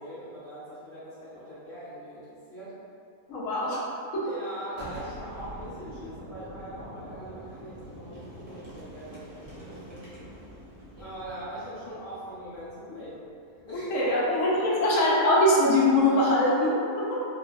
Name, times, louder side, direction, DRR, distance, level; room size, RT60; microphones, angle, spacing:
voice 1, 0.0-2.8 4.2-10.0 10.9-13.2 13.5-14.9, equal, 45° left, -13 dB, 1.1 m, -40 dB
voice 2, 3.3-4.3 13.9-17.3, left 1 dB, 70° left, -6 dB, 0.9 m, -23 dB
Boom, 4.7-14.3, right 1 dB, 40° right, 0.6 m, -46 dB
3.0 x 2.2 x 2.5 m, 2.5 s
omnidirectional pair, 1.6 m